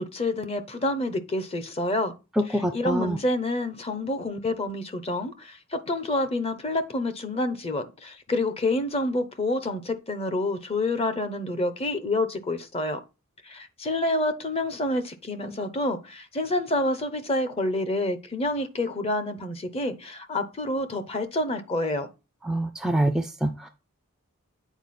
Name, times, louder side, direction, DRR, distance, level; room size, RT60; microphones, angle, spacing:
voice 1, 0.0-2.1 2.7-13.0 13.4-22.1, left 2 dB, 25° left, 0.7 m, -28 dB
voice 2, 2.4-3.2 22.4-23.7, right 1 dB, ahead, 0.4 m, -25 dB
8.0 x 4.4 x 4.2 m
head